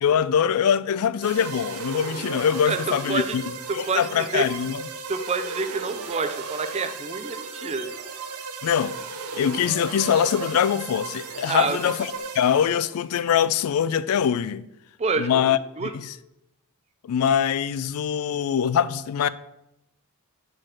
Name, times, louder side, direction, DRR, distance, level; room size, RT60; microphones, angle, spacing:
voice 1, 0.0-3.4 3.7-4.8 8.6-9.0 9.3-14.7 15.2-16.1 17.0-19.3, left 8 dB, 75° left, 0.3 m, -23 dB
sound 1, 1.2-13.0, right 4 dB, 85° right, 0.7 m, -35 dB
voice 2, 3.7-4.5 5.1-7.9 11.5-11.8 15.0-15.3 15.8-16.0, right 4 dB, 30° right, 0.4 m, -27 dB
4.9 x 4.6 x 5.7 m
head